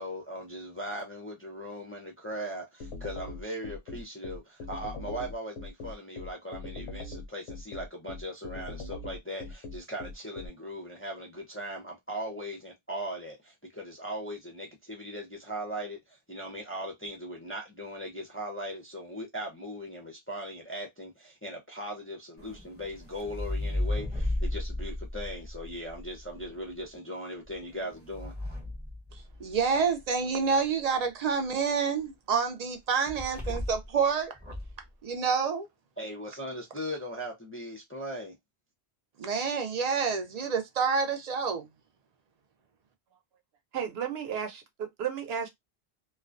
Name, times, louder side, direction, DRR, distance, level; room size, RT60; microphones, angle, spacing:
voice 1, 0.0-28.3 36.0-38.4, equal, 20° left, 0.4 m, -39 dB
sound 1, 2.8-10.5, left 2 dB, 85° left, 0.8 m, -40 dB
sound 2, 22.4-26.5 27.4-29.8 33.1-34.0 34.3-34.8, left 1 dB, 10° right, 0.8 m, -35 dB
voice 2, 29.4-34.3 35.0-35.7 39.2-41.7, right 5 dB, 50° right, 0.5 m, -28 dB
voice 3, 43.7-45.5, right 8 dB, 70° right, 0.9 m, -33 dB
2.3 x 2.2 x 2.4 m
omnidirectional pair, 1.1 m